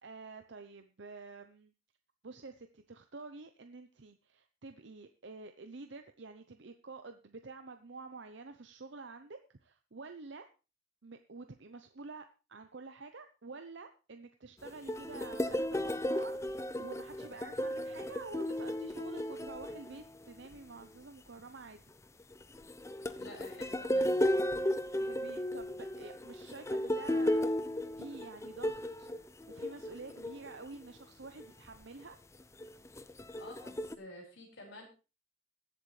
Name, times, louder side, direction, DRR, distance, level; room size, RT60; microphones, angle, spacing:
voice 1, 0.0-1.7 2.2-10.5 11.0-21.8 25.0-27.7 28.0-29.1 29.5-32.2, right 3 dB, 60° right, 8 dB, 0.7 m, -49 dB
sound 1, 14.6-20.5 22.3-30.6 31.2-31.5 32.6-34.0, left 1 dB, 15° left, 0.5 m, -34 dB
voice 2, 23.2-24.4 33.4-34.8, left 1 dB, 65° left, 0 dB, 5.3 m, -50 dB
21.0 x 7.9 x 3.3 m, 0.32 s
head